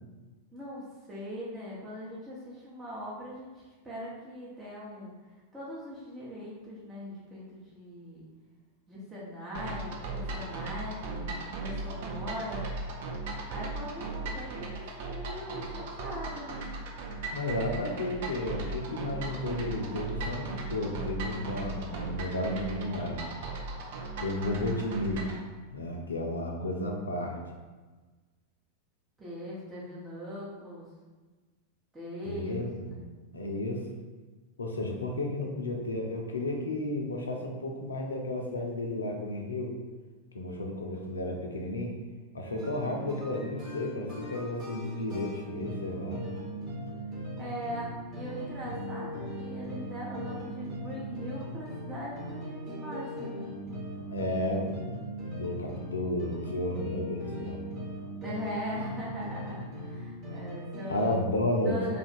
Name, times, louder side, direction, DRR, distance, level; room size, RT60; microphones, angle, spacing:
voice 1, 0.5-5.1 5.5-8.2 8.9-12.7 13.5-16.6 29.2-30.9 31.9-33.1 47.4-53.5 58.2-61.1 61.6-62.0, equal, 15° right, -8 dB, 0.8 m, -40 dB
sound 1, 9.5-25.4, right 2 dB, 55° right, 0.5 m, -37 dB
voice 2, 17.3-23.3 24.2-25.3 25.7-27.4 32.2-32.9 33.3-33.8 34.6-39.7 40.3-41.9 42.3-46.2 54.1-57.6 60.9-61.8, left 1 dB, 75° left, 1 dB, 0.5 m, -32 dB
sound 2, 42.4-61.2, equal, 35° right, 1.1 m, -39 dB
2.8 x 2.4 x 4.2 m, 1.3 s
figure-of-eight pair, 90°, 0 cm